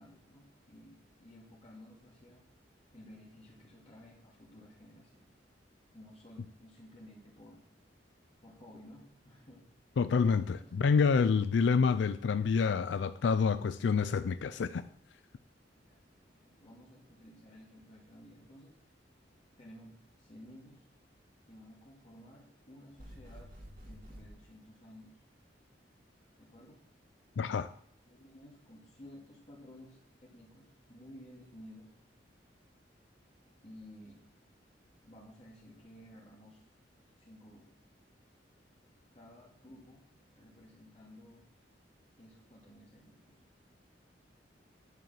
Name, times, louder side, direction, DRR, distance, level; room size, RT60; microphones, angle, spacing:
voice 1, 0.0-2.4 2.9-5.3 5.9-7.6 8.4-9.6 10.4-10.7 14.2-14.3 14.7-14.9 15.8-16.0 16.3-18.7 19.6-20.8 21.5-23.5 23.8-25.2 26.4-26.8 28.1-31.9 33.6-34.2 35.1-36.6 37.2-37.7 39.1-40.0 40.4-41.4 42.2-43.4, left 1 dB, 35° left, 2.4 m, -55 dB
voice 2, 10.0-14.8 27.4-27.7, left 5 dB, 75° left, 0.4 m, -28 dB
sound 1, 23.0-24.3, equal, 50° right, 2.4 m, -49 dB
11.5 x 5.4 x 7.4 m
head